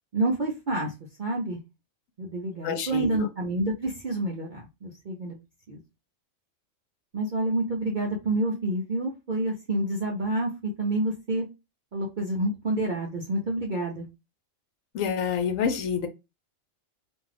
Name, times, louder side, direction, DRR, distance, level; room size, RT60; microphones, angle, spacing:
voice 1, 0.1-0.9 1.2-1.6 2.2-5.4 5.7-5.8 7.1-11.4 11.9-14.1, right 1 dB, 50° right, 0.6 m, -28 dB
voice 2, 2.6-3.3 14.9-16.1, left 6 dB, 80° left, 1.0 m, -27 dB
2.5 x 2.3 x 3.3 m
omnidirectional pair, 1.4 m